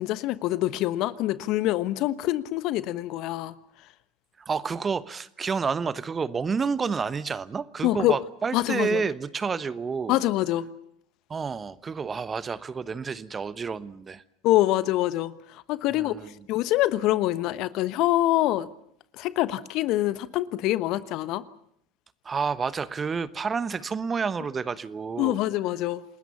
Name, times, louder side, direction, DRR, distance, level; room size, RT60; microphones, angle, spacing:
voice 1, 0.0-3.5 7.8-8.2 8.5-9.0 10.1-10.7 14.4-16.2 16.5-18.7 19.1-21.4 25.2-26.0, left 15 dB, 55° left, 1.1 m, -25 dB
voice 2, 4.4-10.2 11.3-14.2 15.9-16.3 22.2-25.4, right 5 dB, 25° right, 1.1 m, -29 dB
28.5 x 20.0 x 7.1 m
figure-of-eight pair, 75°, 0 cm